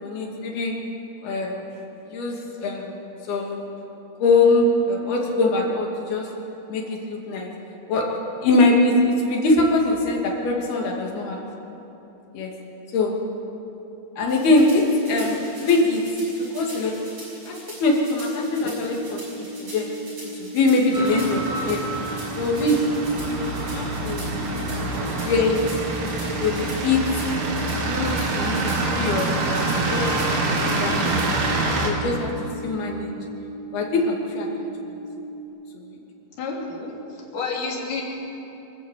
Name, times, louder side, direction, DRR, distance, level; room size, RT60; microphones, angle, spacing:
voice 1, 0.0-0.7 1.2-1.6 2.1-3.0 3.3-3.7 4.2-6.3 6.7-7.5 7.9-8.1 8.4-11.4 12.3-12.5 12.9-13.1 14.2-14.8 15.1-16.1 16.5-16.9 17.5-19.2 19.6-19.9 20.4-21.8 22.4-22.8 23.2-24.3 24.9-25.6 26.4-27.0 27.7-31.1 31.8-32.3 32.6-33.1 33.7-34.7 35.9-36.0, left 2 dB, 90° left, -1 dB, 4.5 m, -22 dB
sound 1, 14.3-31.5, right 1 dB, 40° right, 7.5 m, -42 dB
sound 2, 18.4-35.4, right 2 dB, 15° left, 1.2 m, -37 dB
sound 3, 20.9-31.9, right 2 dB, 90° right, 4.2 m, -26 dB
voice 2, 36.4-36.9 37.3-38.0, left 4 dB, 60° left, -2 dB, 4.7 m, -29 dB
25.0 x 14.0 x 8.4 m, 3.0 s
omnidirectional pair, 4.3 m